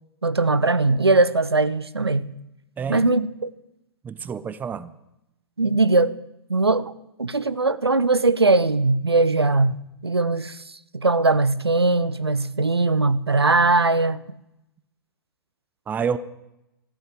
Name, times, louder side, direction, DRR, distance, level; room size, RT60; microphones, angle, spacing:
voice 1, 0.2-2.3 2.9-3.5 5.6-6.2 6.5-6.9 7.2-14.2, right 3 dB, 90° right, 0.7 m, -20 dB
voice 2, 2.8-3.1 4.0-4.9 15.9-16.2, right 7 dB, 15° right, 0.6 m, -28 dB
14.0 x 8.0 x 9.1 m
figure-of-eight pair, 110°, 13 cm